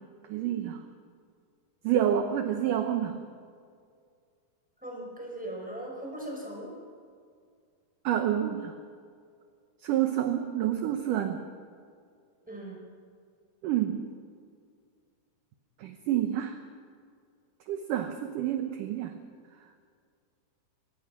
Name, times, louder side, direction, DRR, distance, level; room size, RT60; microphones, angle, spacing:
voice 1, 0.3-0.8 1.8-3.2 8.0-8.7 9.8-11.4 13.6-14.0 15.8-16.6 17.7-19.1, right 10 dB, 70° right, 7 dB, 2.2 m, -28 dB
voice 2, 4.8-6.7 12.5-12.8, right 1 dB, ahead, -2 dB, 5.3 m, -39 dB
24.5 x 18.5 x 6.0 m, 2.2 s
omnidirectional pair, 4.4 m